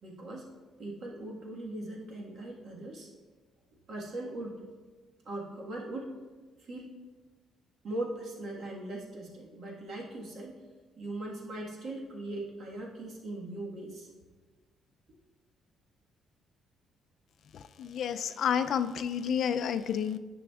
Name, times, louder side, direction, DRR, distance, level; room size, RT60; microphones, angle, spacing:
voice 1, 0.0-0.5 0.8-3.1 3.9-4.6 5.2-6.2 6.6-6.9 7.8-10.6 11.0-14.1, right 2 dB, 50° right, -2 dB, 1.5 m, -39 dB
voice 2, 17.8-20.2, left 8 dB, 60° left, 11 dB, 0.3 m, -30 dB
10.0 x 6.0 x 2.4 m, 1.3 s
cardioid pair, 135°, 0 cm